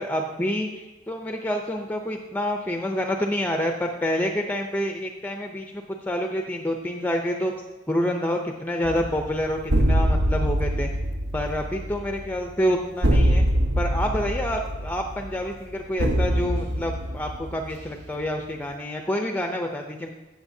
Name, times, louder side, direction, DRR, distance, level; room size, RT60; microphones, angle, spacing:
voice 1, 0.0-7.5 7.9-10.9 11.3-13.4 13.8-20.1, equal, 10° left, 3 dB, 0.5 m, -28 dB
sound 1, 8.8-18.3, equal, 65° right, 0.8 m, -24 dB
16.5 x 6.4 x 2.7 m, 1.1 s
head